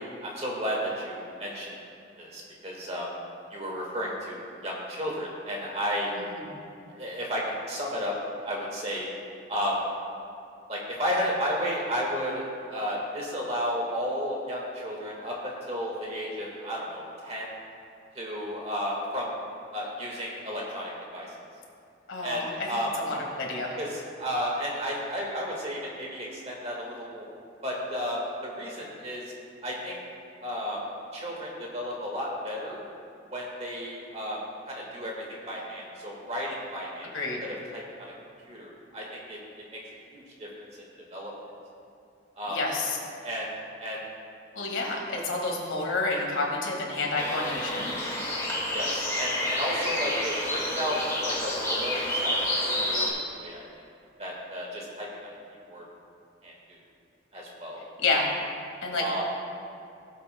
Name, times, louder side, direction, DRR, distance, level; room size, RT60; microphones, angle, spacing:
voice 1, 0.0-1.7 2.2-3.1 3.5-6.1 6.8-8.1 8.4-9.1 9.5-9.8 10.7-12.4 12.7-17.5 18.1-19.3 19.7-21.3 22.2-22.9 23.8-27.3 27.6-29.3 29.6-30.0 30.4-30.8 31.1-32.9 33.3-34.4 34.7-37.1 37.4-37.8 38.5-39.4 40.1-40.5 41.1-41.3 42.3-42.6 43.2-43.5 43.8-44.0 48.7-52.4 52.8-53.6 54.2-55.1 55.7-55.8 56.4-56.8 57.3-57.8 59.0-59.2, equal, 35° right, -3 dB, 1.6 m, -33 dB
voice 2, 22.1-22.5 23.0-23.7 37.1-37.4 42.5-43.0 44.5-47.9 58.0-58.2 58.8-59.0, left 3 dB, 85° left, -1 dB, 1.8 m, -29 dB
sound 1, 47.2-53.1, left 1 dB, 15° left, 1.3 m, -29 dB
18.0 x 7.6 x 2.2 m, 2.4 s
head